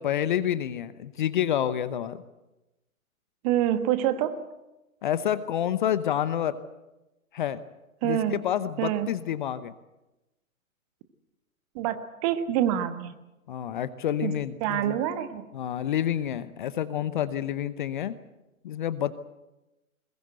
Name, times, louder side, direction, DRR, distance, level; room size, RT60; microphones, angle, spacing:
voice 1, 0.0-2.2 5.0-6.6 7.3-7.6 8.0-9.7 13.5-15.0 15.5-18.2 18.6-19.2, left 10 dB, 35° left, 15 dB, 0.9 m, -28 dB
voice 2, 3.4-4.4 8.0-8.4 8.8-9.1 11.7-13.1 14.2-14.3 14.6-15.5, right 11 dB, 25° right, 10 dB, 1.4 m, -26 dB
21.5 x 21.0 x 8.0 m, 1.0 s
figure-of-eight pair, 125°, 42 cm